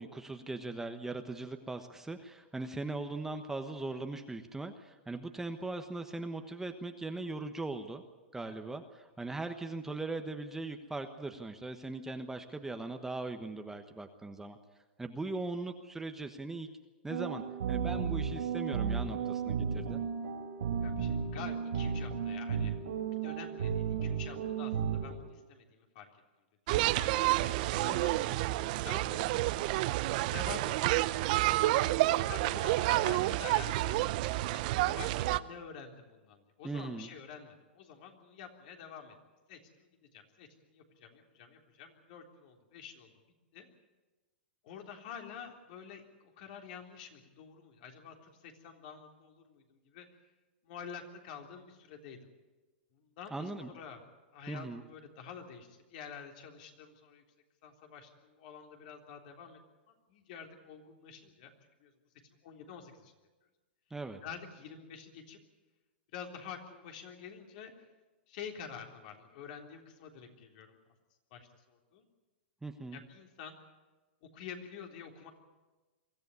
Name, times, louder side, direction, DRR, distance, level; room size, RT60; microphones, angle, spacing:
voice 1, 0.0-8.0 8.3-14.6 15.0-16.7 17.0-20.0 36.6-37.1 53.3-53.7 54.5-54.8 63.9-64.2 72.6-73.0, right 2 dB, 5° right, 6 dB, 1.2 m, -39 dB
sound 1, 17.1-25.1, right 7 dB, 80° right, 4.0 m, -34 dB
voice 2, 20.8-22.8 23.1-26.1 26.9-27.3 27.8-29.4 30.3-31.0 31.4-31.8 32.2-34.0 34.5-39.2 39.5-43.1 43.5-43.7 44.6-50.1 50.6-52.2 52.9-54.0 54.3-57.2 57.6-59.6 59.9-61.5 61.8-61.9 62.4-63.1 64.2-65.4 66.1-67.7 68.3-70.8 71.3-72.1 72.9-73.6 74.2-75.3, left 7 dB, 55° left, 3 dB, 3.5 m, -48 dB
sound 2, 26.7-35.4, right 17 dB, 50° right, 0.7 m, -29 dB
23.5 x 14.0 x 9.6 m, 1.2 s
hypercardioid pair, 130°, 6 cm